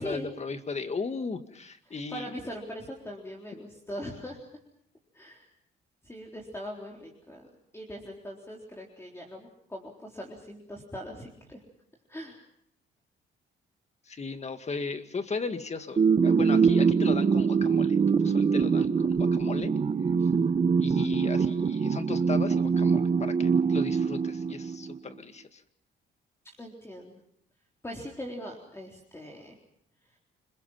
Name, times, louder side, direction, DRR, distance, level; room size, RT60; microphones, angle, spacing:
voice 1, 0.0-2.3 14.1-19.7 20.8-25.6, left 4 dB, 35° left, 8 dB, 2.0 m, -36 dB
voice 2, 1.9-4.4 5.1-5.5 6.0-7.5 7.7-11.6 12.1-12.4 20.2-20.3 21.3-21.5 26.6-27.2 27.8-29.6, equal, 15° left, -1 dB, 4.0 m, -41 dB
sound 1, 16.0-25.0, right 5 dB, 35° right, 1.1 m, -24 dB
29.0 x 21.5 x 5.8 m, 0.70 s
cardioid pair, 90°, 20 cm